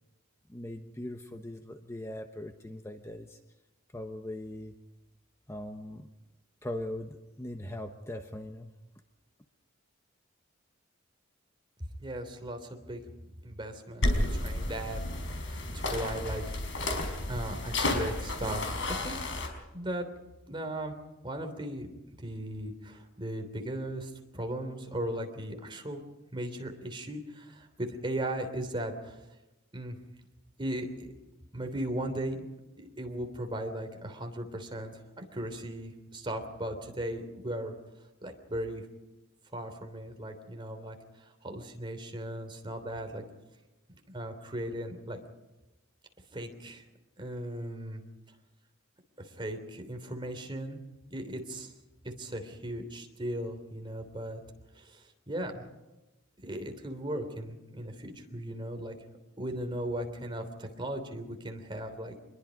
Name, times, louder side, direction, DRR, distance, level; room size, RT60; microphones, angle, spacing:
voice 1, 0.5-3.4 3.9-4.7 5.5-6.1 6.6-8.7, left 1 dB, 15° left, 5 dB, 1.0 m, -40 dB
voice 2, 12.0-13.0 13.4-16.6 17.3-19.2 19.7-20.1 20.5-21.0 21.2-21.9 22.2-26.0 26.3-29.2 29.7-30.0 30.6-31.1 31.5-32.4 32.8-37.7 38.2-38.9 39.5-43.2 44.1-45.2 46.3-46.8 47.2-48.0 49.2-50.8 51.1-51.7 52.0-54.4 54.7-55.7 56.4-59.0 59.4-62.1, right 1 dB, 25° right, 5 dB, 3.3 m, -37 dB
sound 1, 14.0-19.5, left 2 dB, 65° left, 4.9 m, -32 dB
26.0 x 21.5 x 5.2 m, 1.0 s
head